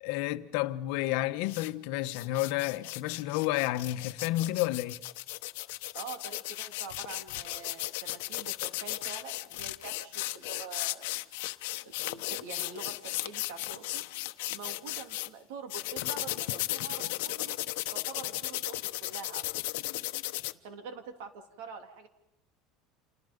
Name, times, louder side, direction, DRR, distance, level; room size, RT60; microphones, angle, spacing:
voice 1, 0.0-5.0, left 16 dB, 65° left, 1.1 m, -31 dB
sound 1, 1.4-1.7 2.0-15.3 15.7-20.5, left 19 dB, 85° left, 0.9 m, -36 dB
voice 2, 5.9-11.2 11.8-14.1 14.5-17.6 17.9-19.9 20.6-22.1, right 5 dB, 85° right, 3.0 m, -45 dB
29.5 x 28.0 x 5.3 m
cardioid pair, 165°, 0 cm